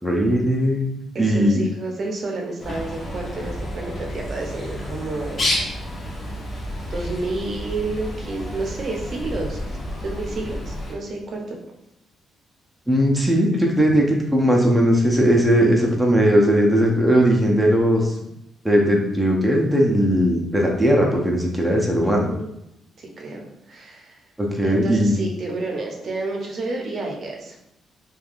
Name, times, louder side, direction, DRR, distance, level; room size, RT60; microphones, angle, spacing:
voice 1, 0.0-1.6 12.9-18.1 18.6-22.3 24.4-25.2, equal, 5° right, -2 dB, 0.5 m, -18 dB
voice 2, 1.1-5.5 6.9-11.6 13.9-14.0 15.6-15.9 22.0-22.5 23.0-23.4 23.7-24.2 24.6-27.6, right 2 dB, 50° right, 0 dB, 0.6 m, -30 dB
Bird, 2.6-10.9, left 1 dB, 40° left, 0.7 m, -30 dB
3.2 x 2.3 x 2.5 m, 0.82 s
cardioid pair, 90°, 0 cm